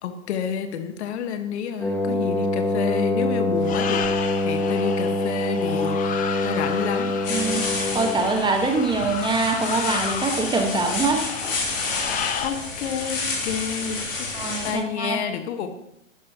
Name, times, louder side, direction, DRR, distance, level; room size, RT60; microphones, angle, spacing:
voice 1, 0.0-6.0 6.4-7.2 12.4-14.3 14.6-15.7, left 8 dB, 60° left, 7 dB, 1.4 m, -29 dB
Wind instrument woodwind instrument, 1.8-8.4, left 2 dB, 5° left, 1.5 m, -25 dB
sound 1, 3.6-12.5, left 8 dB, 20° left, 0.8 m, -32 dB
sound 2, 7.2-14.7, left 3 dB, 80° left, 3.0 m, -30 dB
voice 2, 7.3-7.7 7.9-11.2 14.3-15.2, right 3 dB, 10° right, 3 dB, 1.3 m, -24 dB
11.0 x 10.5 x 2.9 m, 0.78 s
hypercardioid pair, 115°, 39 cm